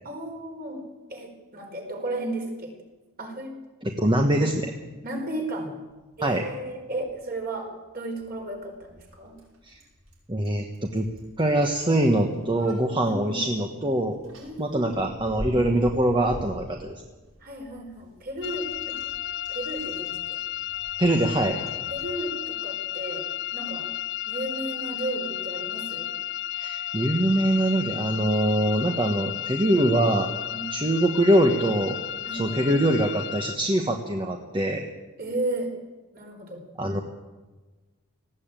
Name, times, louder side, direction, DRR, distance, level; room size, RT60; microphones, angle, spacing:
voice 1, 0.0-2.7 3.2-3.5 5.0-5.7 6.2-9.4 13.0-13.4 14.4-15.1 17.4-19.0 19.5-20.4 21.9-23.9 24.3-26.1 30.5-30.7 32.2-32.8 35.2-35.7 36.1-36.6, right 1 dB, 45° right, 2 dB, 4.6 m, -34 dB
voice 2, 3.8-4.7 6.2-6.5 9.7-9.8 10.3-11.1 11.4-14.2 14.6-16.9 21.0-21.6 26.5-30.3 30.7-32.0 32.3-34.8 36.8-37.0, right 1 dB, 20° right, 3 dB, 1.2 m, -23 dB
Bicycle, 5.9-22.1, equal, 70° right, 7.2 m, -46 dB
sound 1, 18.4-33.6, left 13 dB, 50° left, 0.6 m, -33 dB
19.0 x 15.5 x 9.0 m, 1.2 s
head